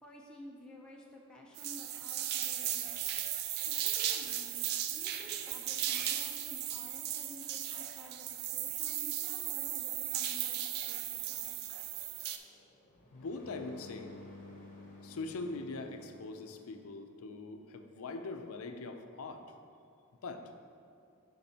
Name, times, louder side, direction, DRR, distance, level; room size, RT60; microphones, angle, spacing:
voice 1, 0.0-3.1 3.6-11.6, left 1 dB, 5° left, -4 dB, 0.5 m, -53 dB
sound 1, 1.6-12.4, right 11 dB, 50° right, 0.3 m, -36 dB
voice 2, 7.7-8.2 13.1-14.1 15.0-19.4 20.2-20.4, left 3 dB, 80° left, 6 dB, 0.5 m, -42 dB
sound 2, 11.3-16.8, left 2 dB, 40° left, 1.0 m, -53 dB
9.5 x 3.9 x 2.8 m, 2.5 s
head